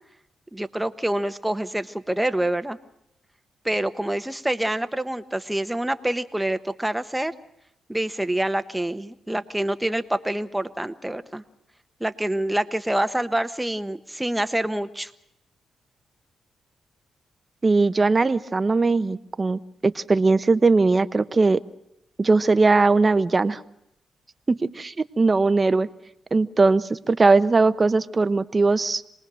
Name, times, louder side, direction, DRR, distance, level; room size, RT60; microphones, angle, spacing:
voice 1, 0.5-2.8 3.6-7.3 7.9-11.4 12.0-15.1, right 1 dB, 10° right, 11 dB, 1.2 m, -26 dB
voice 2, 17.6-21.6 22.2-23.6 24.5-25.9 26.3-29.0, right 3 dB, 35° right, 13 dB, 0.9 m, -20 dB
27.0 x 20.0 x 6.3 m, 0.80 s
cardioid pair, 60°, 0 cm